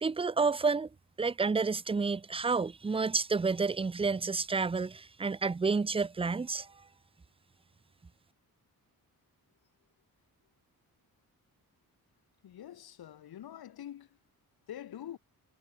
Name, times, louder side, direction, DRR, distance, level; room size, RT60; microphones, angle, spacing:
voice 1, 0.0-0.9 1.2-6.7, right 4 dB, 15° right, 0.6 m, -30 dB
voice 2, 12.4-14.2 14.7-15.2, left 11 dB, 85° left, 6.2 m, -45 dB
cardioid pair, 125°, 36 cm